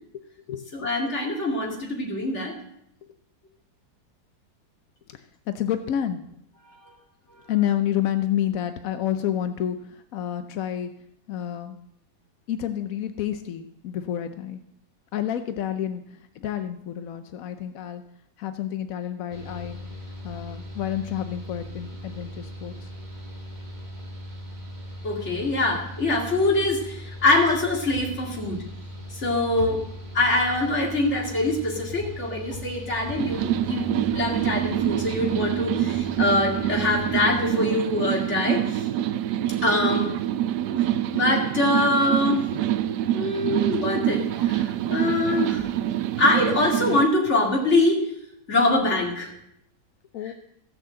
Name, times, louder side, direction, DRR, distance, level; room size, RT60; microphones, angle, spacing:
voice 1, 0.7-2.5 25.0-28.6 29.1-29.8 30.1-38.8 39.6-40.1 41.1-42.5 43.1-48.0 48.5-49.3, left 2 dB, 35° left, -1 dB, 2.7 m, -24 dB
voice 2, 5.5-6.3 7.5-10.9 11.3-11.8 12.5-14.6 15.1-18.0 18.4-19.8 20.2-22.9 50.1-50.3, left 10 dB, 65° left, 9 dB, 0.8 m, -29 dB
Mechanical fan, 19.3-37.4, left 1 dB, 25° right, 1.8 m, -39 dB
sound 1, 33.2-47.1, right 12 dB, 70° right, 1.0 m, -26 dB
15.5 x 6.3 x 7.6 m, 0.76 s
omnidirectional pair, 2.2 m